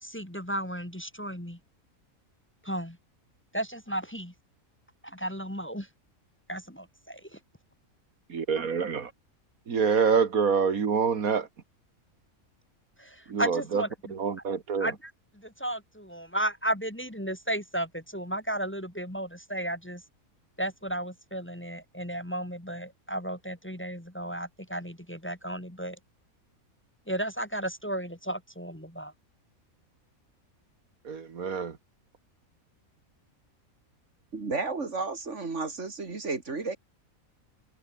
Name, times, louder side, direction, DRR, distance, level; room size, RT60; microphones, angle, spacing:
voice 1, 0.0-1.6 2.6-3.0 3.5-4.3 5.0-5.9 6.5-7.4 13.0-14.1 14.8-20.0 20.6-26.0 27.1-29.1, right 1 dB, 10° left, 2.3 m, -34 dB
voice 2, 8.3-9.1 9.7-11.5 13.3-13.8 14.1-14.9 31.0-31.8, right 6 dB, 80° right, 2.2 m, -26 dB
voice 3, 34.3-36.8, right 3 dB, 55° right, 2.8 m, -32 dB
omnidirectional pair, 1.5 m